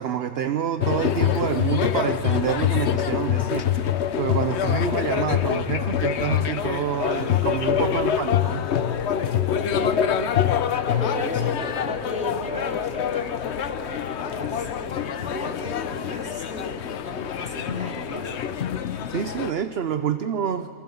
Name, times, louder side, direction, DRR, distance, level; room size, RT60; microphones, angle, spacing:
voice 1, 0.0-8.6 19.1-20.7, right 8 dB, 50° right, 10 dB, 0.8 m, -27 dB
sound 1, 0.8-19.5, left 9 dB, 55° left, 0.9 m, -25 dB
voice 2, 1.0-1.5 7.6-8.2 9.2-10.2 10.7-18.3, equal, 5° right, -2 dB, 3.5 m, -37 dB
sound 2, 8.2-13.2, left 5 dB, 90° left, 1.8 m, -37 dB
27.5 x 23.5 x 7.1 m, 2.5 s
omnidirectional pair, 1.6 m